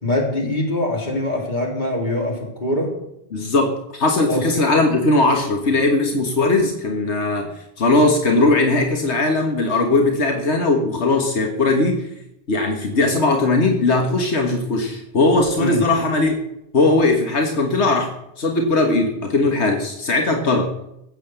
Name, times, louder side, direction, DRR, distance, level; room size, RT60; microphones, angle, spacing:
voice 1, 0.0-2.9 4.3-4.5 15.6-15.8, left 1 dB, 45° left, -1 dB, 4.0 m, -23 dB
voice 2, 3.3-7.5 7.8-12.1 12.5-16.4 16.7-18.1 18.4-20.7, left 2 dB, 90° left, 3 dB, 1.8 m, -19 dB
14.5 x 8.1 x 7.9 m, 0.80 s
omnidirectional pair, 1.1 m